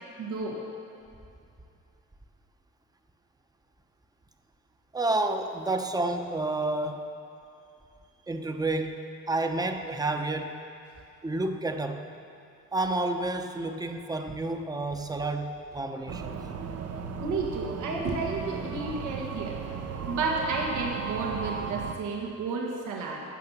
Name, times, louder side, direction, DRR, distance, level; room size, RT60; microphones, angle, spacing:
voice 1, 0.2-0.6 17.2-19.6 20.1-23.2, right 3 dB, 80° right, -1 dB, 1.6 m, -31 dB
voice 2, 4.9-7.1 8.3-9.0 9.3-10.5 11.2-12.1 12.7-16.4, right 2 dB, 15° right, 6 dB, 0.8 m, -30 dB
sound 1, 16.1-21.9, right 6 dB, 55° right, 0.8 m, -35 dB
15.5 x 5.8 x 7.3 m, 2.6 s
cardioid pair, 90°, 30 cm